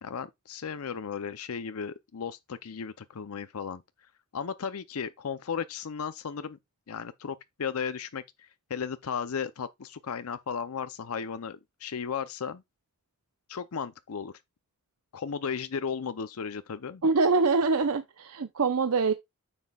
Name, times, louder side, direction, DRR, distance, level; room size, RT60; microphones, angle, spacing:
voice 1, 0.0-3.8 4.3-6.6 6.9-12.6 13.5-14.3 15.1-17.0, left 6 dB, 75° left, 0.6 m, -35 dB
voice 2, 17.0-19.1, right 4 dB, 75° right, 0.7 m, -24 dB
9.7 x 7.2 x 2.3 m
head